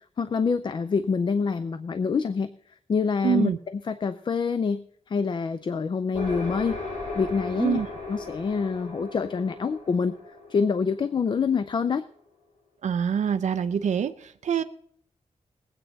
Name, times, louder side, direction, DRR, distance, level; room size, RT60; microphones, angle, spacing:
voice 1, 0.2-2.5 2.9-6.8 7.1-7.8 8.1-10.2 10.5-12.0, left 5 dB, 40° left, 12 dB, 0.4 m, -26 dB
voice 2, 3.2-3.6 7.6-7.9 12.8-14.6, right 7 dB, 75° right, 9 dB, 0.5 m, -25 dB
sound 1, 6.1-11.8, left 2 dB, 90° left, 5.7 m, -37 dB
20.0 x 8.9 x 4.0 m, 0.64 s
wide cardioid pair, 165°, 12 cm